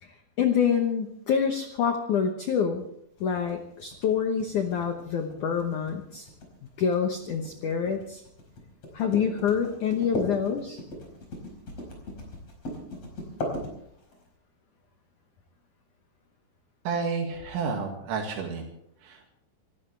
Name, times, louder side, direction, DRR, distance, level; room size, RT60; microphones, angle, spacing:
voice 1, 0.0-2.8 3.2-6.3 6.8-8.2 8.9-10.8, left 7 dB, 80° left, 5 dB, 1.8 m, -27 dB
sound 1, 3.2-14.2, left 1 dB, 35° left, 5.5 m, -38 dB
voice 2, 16.9-18.7 19.0-19.3, right 5 dB, 80° right, 1 dB, 4.4 m, -31 dB
27.0 x 14.5 x 3.3 m, 0.72 s
omnidirectional pair, 5.3 m